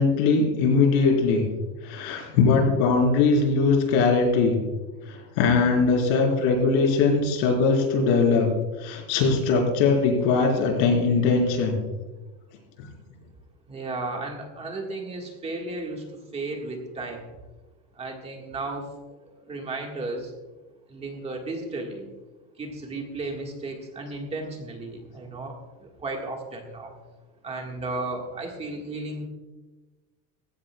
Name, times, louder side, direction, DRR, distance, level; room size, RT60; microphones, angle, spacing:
voice 1, 0.0-1.4 1.8-4.6 5.1-8.5 8.8-11.8 12.8-12.9, left 4 dB, 80° left, 0 dB, 4.3 m, -21 dB
voice 2, 13.7-16.1 16.3-17.2 18.0-18.9 19.5-20.3 20.9-22.1 22.6-26.9 27.4-29.3, right 2 dB, 20° right, 1 dB, 1.6 m, -34 dB
18.0 x 16.0 x 2.3 m, 1.2 s
cardioid pair, 175°, 33 cm